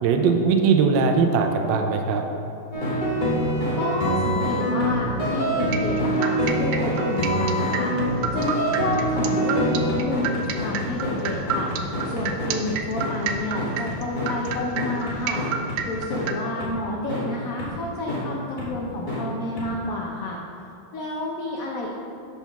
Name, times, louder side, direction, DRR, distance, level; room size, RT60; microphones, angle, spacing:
voice 1, 0.0-2.2, right 5 dB, 70° right, 4 dB, 1.2 m, -20 dB
sound 1, 2.7-15.8 16.1-16.2 16.6-16.7 17.1-17.2 17.6-17.7 18.1-18.2 18.6-18.7 19.1-19.2 19.6-19.7, equal, 30° left, 1.2 m, -25 dB
voice 2, 3.7-20.4 20.9-21.9, left 2 dB, 65° left, -2 dB, 0.9 m, -30 dB
sound 2, 5.7-16.3, right 7 dB, 90° right, 1.4 m, -29 dB
6.8 x 4.5 x 5.8 m, 2.7 s
omnidirectional pair, 2.2 m